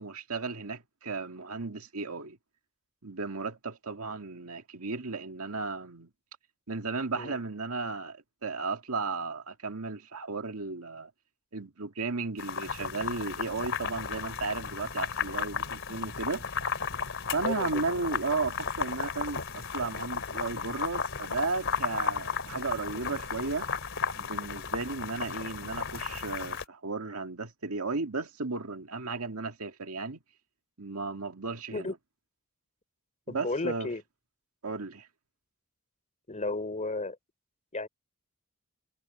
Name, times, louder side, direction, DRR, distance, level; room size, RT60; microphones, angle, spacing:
voice 1, 0.0-2.4 3.0-6.1 6.7-11.1 11.5-16.4 17.3-23.7 24.2-30.2 30.8-31.9 33.3-33.9 34.6-35.1, right 3 dB, 75° right, 2.0 m, -34 dB
sound 1, 12.4-26.6, left 6 dB, 60° left, 3.3 m, -34 dB
voice 2, 17.4-18.2 22.9-23.1 31.7-31.9 33.3-34.0 36.3-37.2 37.7-37.9, left 2 dB, 35° left, 3.6 m, -34 dB
head